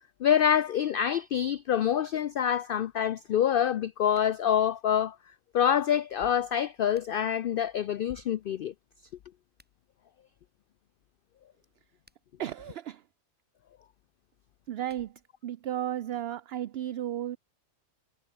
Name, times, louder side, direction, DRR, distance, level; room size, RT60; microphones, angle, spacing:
voice 1, 0.2-5.1 5.5-8.7, left 9 dB, 65° left, 0.5 m, -26 dB
sound 1, 4.1-4.4 6.4-7.4 9.4-9.8 11.8-12.5 14.5-15.4, equal, 5° right, 7.2 m, -65 dB
voice 2, 12.4-13.0 14.7-17.4, right 11 dB, 60° right, 0.8 m, -34 dB
omnidirectional pair, 1.4 m